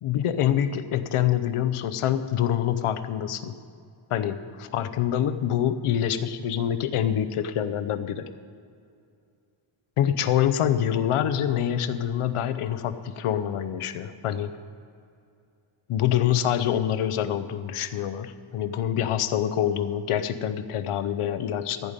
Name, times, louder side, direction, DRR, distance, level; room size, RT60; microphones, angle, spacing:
voice 1, 0.0-3.5 4.1-8.3 10.0-14.5 15.9-21.9, left 10 dB, 85° left, 11 dB, 0.8 m, -26 dB
15.0 x 5.2 x 8.9 m, 2.4 s
wide cardioid pair, 125°, 49 cm